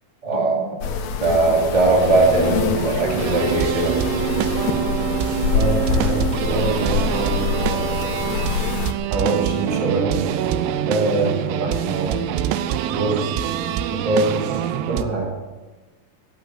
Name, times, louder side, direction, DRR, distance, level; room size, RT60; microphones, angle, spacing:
voice 1, 0.2-0.6 1.2-3.9, right 2 dB, 10° right, -2 dB, 2.2 m, -19 dB
sound 1, 0.8-8.9, left 6 dB, 75° left, 3.0 m, -25 dB
sound 2, 2.0-15.0, right 10 dB, 85° right, 2.8 m, -25 dB
voice 2, 5.5-8.1 9.1-12.4 12.9-15.3, right 2 dB, 60° right, -1 dB, 3.9 m, -25 dB
14.5 x 8.8 x 8.1 m, 1.2 s
omnidirectional pair, 4.8 m